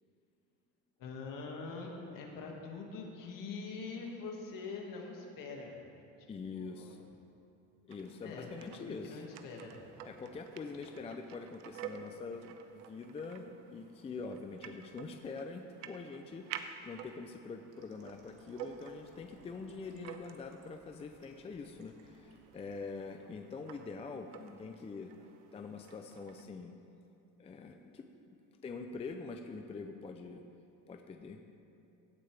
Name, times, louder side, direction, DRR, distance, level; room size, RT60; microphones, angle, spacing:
voice 1, 1.0-5.8 6.4-7.0 8.2-10.1, left 4 dB, 55° left, 0 dB, 2.0 m, -44 dB
voice 2, 6.3-7.1 7.9-9.2 10.0-25.1 25.5-26.8 27.4-30.4 30.9-31.4, left 4 dB, 15° left, 5 dB, 0.4 m, -45 dB
sound 1, 7.9-26.5, right 9 dB, 85° right, 0.8 m, -51 dB
sound 2, 17.7-22.8, right 5 dB, 65° right, 2.1 m, -65 dB
16.5 x 8.5 x 3.4 m, 2.7 s
supercardioid pair, 115°, 39 cm